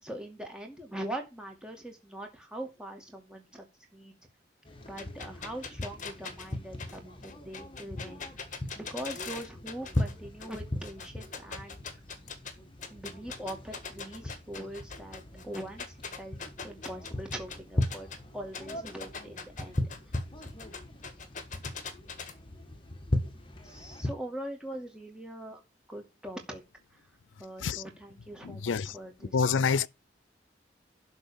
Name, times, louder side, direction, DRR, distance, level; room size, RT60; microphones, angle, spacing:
voice 1, 0.0-3.6 3.9-4.1 4.8-8.2 8.8-11.8 12.9-16.4 16.6-18.1 18.3-19.8 23.6-25.6 25.9-26.6 27.4-29.8, right 1 dB, 5° right, 2.3 m, -42 dB
sound 1, 4.7-24.1, left 1 dB, 25° left, 1.6 m, -38 dB
sound 2, 5.0-10.1 10.4-12.5 12.8-18.2 18.5-22.3, left 5 dB, 40° left, 1.7 m, -41 dB
voice 2, 28.5-28.9 29.3-29.9, left 5 dB, 85° left, 0.5 m, -27 dB
11.5 x 4.1 x 7.0 m
head